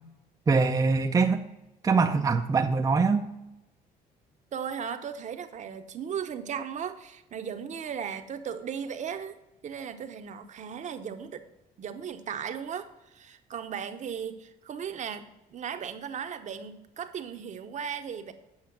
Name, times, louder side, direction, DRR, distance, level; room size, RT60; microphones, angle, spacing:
voice 1, 0.5-1.4 1.8-3.3, right 4 dB, 20° right, 4 dB, 0.5 m, -23 dB
voice 2, 4.5-9.3 9.6-11.4 11.8-18.3, right 7 dB, 45° right, 8 dB, 0.9 m, -36 dB
8.8 x 5.6 x 5.8 m, 0.92 s
cardioid pair, 110°, 17 cm